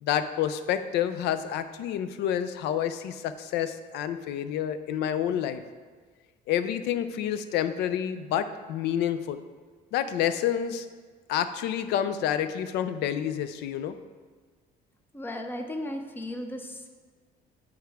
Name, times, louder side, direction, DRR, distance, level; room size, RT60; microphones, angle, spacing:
voice 1, 0.0-5.6 6.5-9.4 9.9-10.9 11.3-13.9, left 10 dB, 85° left, 12 dB, 0.5 m, -28 dB
voice 2, 15.1-16.9, left 1 dB, 10° left, 5 dB, 0.7 m, -35 dB
9.3 x 4.6 x 3.5 m, 1.5 s
cardioid pair, 110°, 17 cm